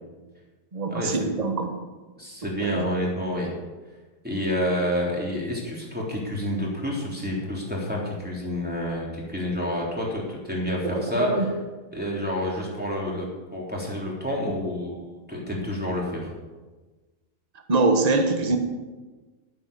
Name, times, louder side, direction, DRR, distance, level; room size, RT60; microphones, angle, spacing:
voice 1, 0.7-1.7 2.6-2.9 10.9-11.4 17.7-18.6, right 3 dB, 25° right, 5 dB, 1.3 m, -23 dB
voice 2, 2.2-3.5 4.2-11.5 11.9-16.3, equal, 5° right, -4 dB, 3.5 m, -29 dB
11.5 x 9.7 x 6.9 m, 1.3 s
omnidirectional pair, 1.7 m